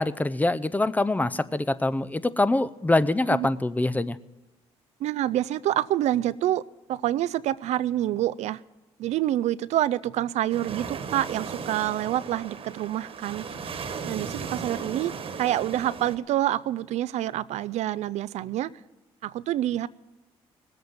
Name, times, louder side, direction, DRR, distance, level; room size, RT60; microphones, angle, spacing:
voice 1, 0.0-4.2, left 2 dB, 15° left, 15 dB, 0.6 m, -24 dB
voice 2, 5.0-6.6 6.9-8.6 9.0-13.5 14.0-15.1 15.4-18.7 19.2-19.9, right 13 dB, 70° right, 18 dB, 0.4 m, -27 dB
sound 1, 10.5-16.2, right 5 dB, 50° right, 1.4 m, -36 dB
18.0 x 8.1 x 7.7 m, 1.1 s
supercardioid pair, 75°, 12 cm